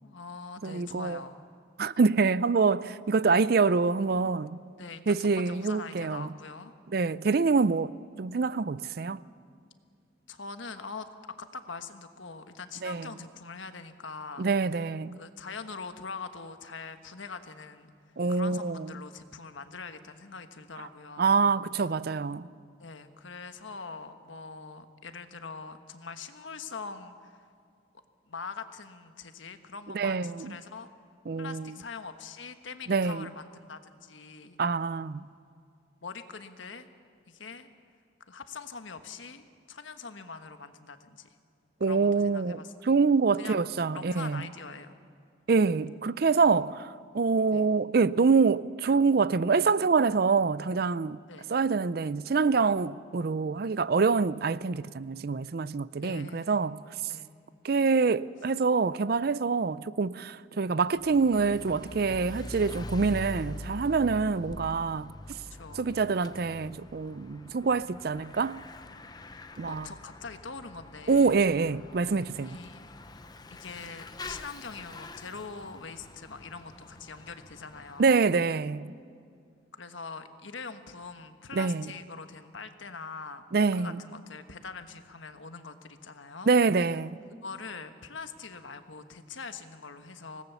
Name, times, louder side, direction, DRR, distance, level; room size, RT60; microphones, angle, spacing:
voice 1, 0.0-1.4 3.2-3.4 4.8-6.7 7.2-7.5 10.3-14.5 15.1-17.9 18.3-21.4 22.8-27.5 28.3-30.9 31.4-34.6 36.0-36.9 37.3-37.7 38.3-41.3 41.8-42.7 43.4-45.0 47.5-47.7 51.3-51.4 56.0-56.7 57.1-57.4 65.5-65.8 67.8-68.1 69.3-71.4 72.4-72.8 73.5-78.2 79.8-83.4 83.7-86.5 87.4-90.4, left 4 dB, 80° left, 1.3 m, -43 dB
voice 2, 0.6-1.2 1.8-4.6 5.1-6.3 6.9-7.9 8.2-9.2 12.8-13.1 14.4-15.2 18.2-18.8 21.2-22.5 29.9-30.5 31.3-31.7 32.9-33.3 34.6-35.3 41.8-44.4 45.5-51.2 51.5-56.8 57.6-65.1 65.8-68.6 69.6-69.9 71.1-72.6 78.0-78.9 81.5-81.8 83.5-83.9 86.5-87.2, right 4 dB, 50° right, 0.4 m, -26 dB
Bicycle / Mechanisms, 60.8-78.4, left 2 dB, 20° left, 0.7 m, -45 dB
25.0 x 19.0 x 7.1 m
head